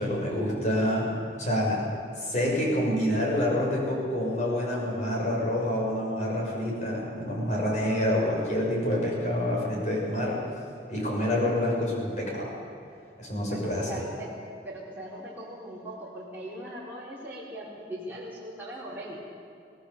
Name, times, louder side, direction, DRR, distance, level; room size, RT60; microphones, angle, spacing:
voice 1, 0.0-1.8 2.2-10.4 10.9-12.5 13.2-13.9, left 1 dB, 40° left, -2 dB, 6.1 m, -27 dB
voice 2, 13.5-14.3 14.6-19.2, right 1 dB, 10° right, -8 dB, 4.2 m, -40 dB
23.5 x 18.0 x 6.9 m, 2.4 s
head